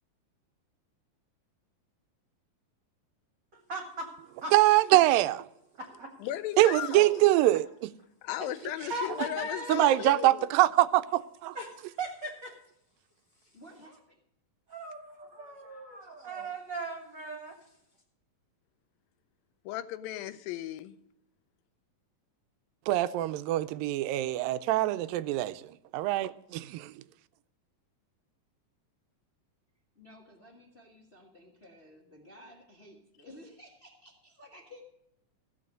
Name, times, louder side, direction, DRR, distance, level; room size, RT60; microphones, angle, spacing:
voice 1, 3.5-4.1 4.4-4.5 5.8-6.1 8.4-10.1 11.5-12.6 14.7-17.6, right 2 dB, 40° right, 1.8 m, -39 dB
voice 2, 4.5-5.3 6.6-7.7 9.7-11.6 22.9-26.9, right 16 dB, 85° right, 2.3 m, -24 dB
voice 3, 6.2-7.2 8.2-10.3 19.7-21.0, left 13 dB, 85° left, 2.4 m, -36 dB
voice 4, 13.5-14.1 30.0-34.8, left 1 dB, 40° left, 0.9 m, -53 dB
15.0 x 7.0 x 6.5 m
omnidirectional pair, 4.1 m